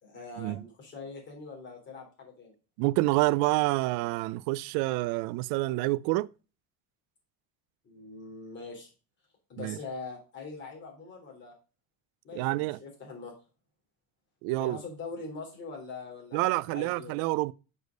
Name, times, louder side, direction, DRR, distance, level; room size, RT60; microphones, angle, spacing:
voice 1, 0.0-2.5 7.8-8.9 9.5-11.5 12.2-13.3 14.6-17.1, left 4 dB, 30° left, 3.5 m, -42 dB
voice 2, 2.8-6.3 9.6-9.8 12.4-12.8 14.4-14.8 16.3-17.5, right 20 dB, 90° right, 0.5 m, -28 dB
6.7 x 4.9 x 5.2 m
cardioid pair, 165°, 35 cm